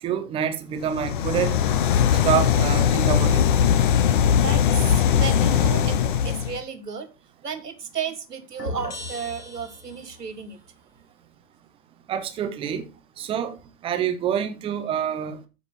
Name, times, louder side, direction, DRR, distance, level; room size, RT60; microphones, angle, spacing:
voice 1, 0.0-1.6 2.2-3.4 12.1-12.8 13.2-13.6 13.8-15.4, right 9 dB, 10° right, 0.8 m, -26 dB
sound 1, 0.9-6.6, left 8 dB, 30° left, 0.6 m, -20 dB
voice 2, 4.4-7.1 7.4-10.6, right 6 dB, 70° right, 1.9 m, -33 dB
sound 2, 8.6-10.3, left 1 dB, 80° left, 4.4 m, -36 dB
13.5 x 5.1 x 3.6 m
figure-of-eight pair, 115°, 49 cm